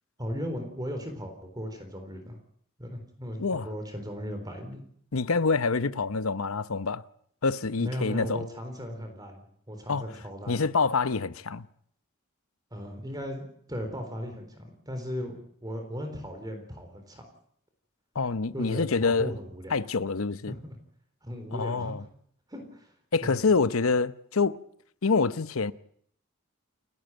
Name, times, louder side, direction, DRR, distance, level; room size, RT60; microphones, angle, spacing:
voice 1, 0.2-2.4 2.8-4.8 7.8-10.6 12.7-17.2 18.5-19.8 20.5-20.7 21.2-22.1 22.5-22.9 23.2-23.4, equal, 20° right, 3.9 m, -37 dB
voice 2, 5.1-7.0 7.4-8.5 9.9-10.1 10.5-11.7 18.1-19.3 19.7-20.5 21.5-22.0 23.1-24.6 25.0-25.7, left 4 dB, 85° left, 0.8 m, -26 dB
29.0 x 12.0 x 9.1 m
head